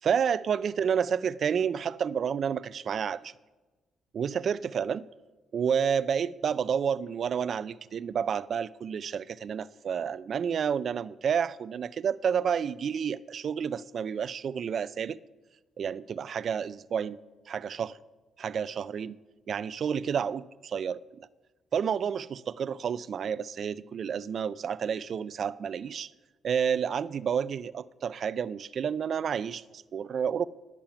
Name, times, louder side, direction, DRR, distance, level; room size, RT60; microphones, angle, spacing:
voice 1, 0.0-3.3 4.1-5.0 5.5-15.2 15.8-17.2 17.5-18.0 18.4-19.2 19.5-21.0 21.7-26.1 26.4-30.5, right 7 dB, 50° right, 0.3 m, -30 dB
10.5 x 7.2 x 5.7 m
cardioid pair, 135°, 0 cm